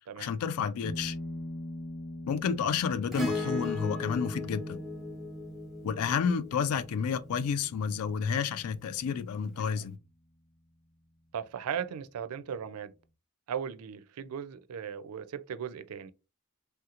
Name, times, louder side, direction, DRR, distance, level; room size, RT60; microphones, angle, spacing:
voice 1, 0.2-1.2 2.3-4.8 5.8-10.0, left 6 dB, 75° left, 0.4 m, -30 dB
sound 1, 0.8-9.8, left 1 dB, 55° left, 0.8 m, -44 dB
Acoustic guitar / Strum, 3.1-7.7 9.6-9.7, left 2 dB, ahead, 0.8 m, -37 dB
voice 2, 11.3-12.9 13.5-16.1, right 8 dB, 80° right, 0.4 m, -37 dB
3.3 x 2.9 x 2.4 m
head